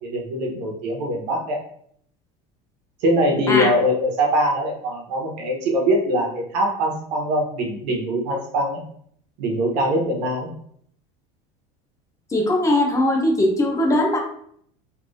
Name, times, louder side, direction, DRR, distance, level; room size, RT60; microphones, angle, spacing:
voice 1, 0.0-1.6 3.0-8.8 9.4-10.5, equal, 90° right, 0 dB, 1.1 m, -22 dB
voice 2, 12.3-14.2, left 1 dB, 15° left, 0 dB, 0.6 m, -19 dB
3.1 x 3.0 x 2.6 m, 0.65 s
cardioid pair, 155°, 21 cm